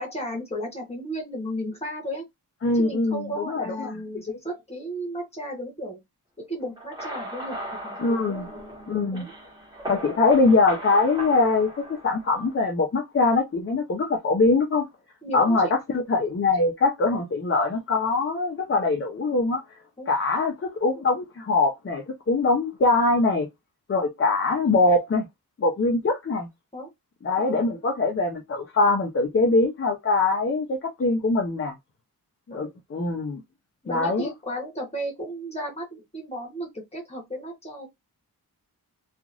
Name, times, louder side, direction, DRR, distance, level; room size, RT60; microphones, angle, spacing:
voice 1, 0.0-2.3 2.8-6.0 6.4-8.2 9.1-9.3 15.2-15.7 17.0-17.2 20.0-20.1 26.7-26.9 27.5-27.6 32.5-32.7 33.8-37.9, equal, 15° left, 1.1 m, -34 dB
voice 2, 2.6-3.9 4.3-4.4 8.0-8.5 8.9-9.3 9.9-14.9 15.3-15.7 15.9-19.6 20.1-23.5 23.9-25.3 25.6-26.5 27.2-31.7 32.5-33.4 33.9-34.3, left 3 dB, 35° left, 0.6 m, -23 dB
sound 1, 6.8-12.6, right 1 dB, 10° right, 1.5 m, -38 dB
2.9 x 2.5 x 2.5 m
wide cardioid pair, 170°, 39 cm